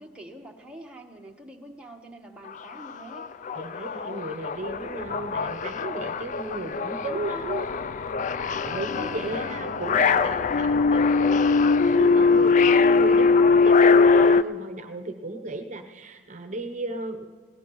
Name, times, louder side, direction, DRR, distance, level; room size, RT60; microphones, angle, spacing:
voice 1, 0.0-3.3 8.9-9.4, right 1 dB, 5° right, 0 dB, 1.1 m, -45 dB
sound 1, 2.5-2.6 2.9-14.4, left 4 dB, 40° left, 0.3 m, -21 dB
voice 2, 3.5-7.7 8.6-17.2, right 2 dB, 40° right, 6 dB, 0.8 m, -35 dB
21.0 x 17.5 x 3.1 m, 1.5 s
head